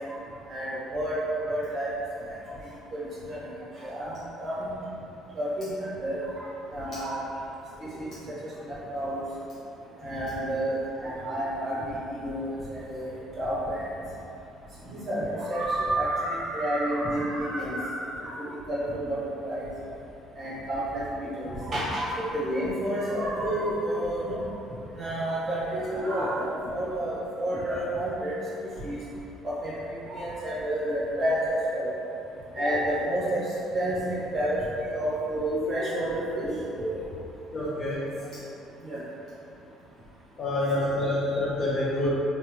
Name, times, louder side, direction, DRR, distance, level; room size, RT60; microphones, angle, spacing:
voice 1, 0.5-1.2 1.4-1.9 2.9-3.4 3.8-4.7 5.3-6.2 6.7-7.2 7.8-8.1 8.7-9.2 10.0-13.9 14.8-19.7 20.4-24.4 24.9-28.3 28.8-29.0 29.4-29.7 30.1-31.9 32.5-33.4 33.7-34.6 34.9-37.0 38.9-39.0, right 1 dB, 30° right, -8 dB, 1.0 m, -30 dB
voice 2, 37.5-38.1 40.4-42.1, left 1 dB, 35° left, -9 dB, 0.5 m, -27 dB
3.2 x 2.2 x 2.9 m, 2.7 s
cardioid pair, 140°, 0 cm